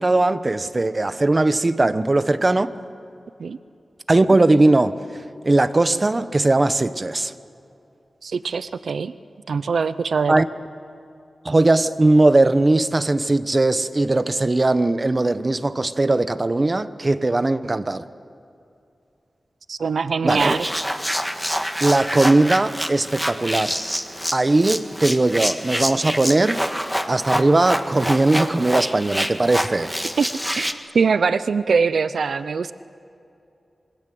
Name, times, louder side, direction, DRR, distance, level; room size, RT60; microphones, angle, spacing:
voice 1, 0.0-2.7 4.1-5.0 5.4-7.3 10.3-10.5 11.4-18.0 20.2-20.5 21.8-23.8 24.3-26.6 27.1-29.9, right 2 dB, 30° right, 1.0 m, -19 dB
voice 2, 8.2-9.1 9.5-10.3 19.7-20.7 30.2-30.3 30.6-30.7 30.9-32.7, right 5 dB, 80° right, 0.6 m, -22 dB
sound 1, 20.3-30.7, equal, 5° right, 1.5 m, -26 dB
27.0 x 23.0 x 7.8 m
wide cardioid pair, 85°, 0 cm